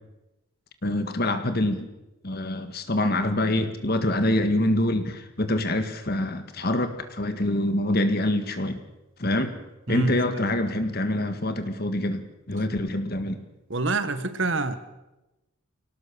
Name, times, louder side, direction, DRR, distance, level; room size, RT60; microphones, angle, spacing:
voice 1, 0.8-1.9 2.2-8.8 9.2-9.6 9.9-13.4, left 1 dB, 45° left, 8 dB, 1.8 m, -25 dB
voice 2, 13.7-14.8, right 3 dB, 55° right, 11 dB, 1.4 m, -26 dB
24.0 x 18.0 x 6.9 m, 0.99 s
head